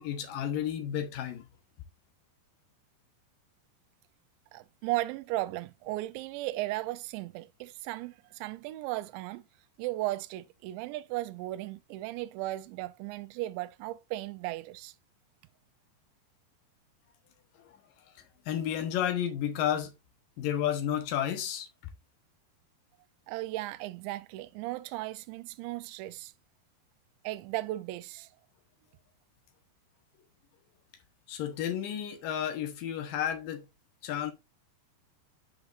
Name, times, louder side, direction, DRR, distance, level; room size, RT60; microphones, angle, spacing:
voice 1, 0.0-1.5 17.6-17.8 18.2-19.9 20.4-21.7 31.3-33.7 34.0-34.3, left 10 dB, 70° left, 2.3 m, -32 dB
voice 2, 4.5-9.4 9.8-14.9 23.3-26.3 27.2-28.3, right 17 dB, 85° right, 2.9 m, -36 dB
9.0 x 5.0 x 2.5 m
omnidirectional pair, 5.1 m